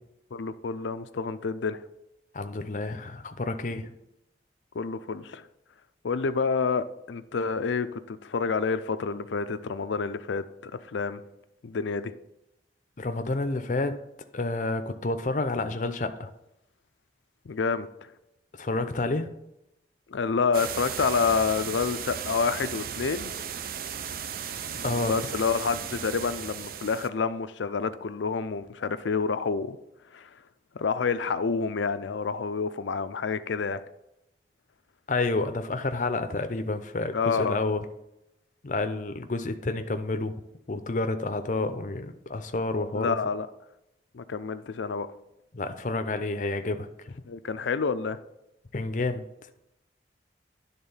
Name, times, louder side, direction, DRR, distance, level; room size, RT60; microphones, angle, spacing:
voice 1, 0.3-1.8 4.7-5.4 6.0-11.2 11.6-12.1 17.5-18.1 20.1-23.3 24.7-29.8 30.1-30.3 30.7-33.8 37.1-37.6 42.9-43.5 44.1-45.1 47.3-48.2, left 5 dB, 90° left, 0.5 m, -28 dB
voice 2, 2.3-3.9 13.0-14.0 14.3-16.3 18.6-19.3 24.8-25.2 35.1-37.9 38.6-40.3 40.7-43.2 45.5-46.9 48.7-49.2, left 2 dB, 45° left, 0.6 m, -29 dB
sound 1, 20.5-27.1, right 8 dB, 50° right, 0.4 m, -36 dB
10.5 x 3.7 x 5.5 m
head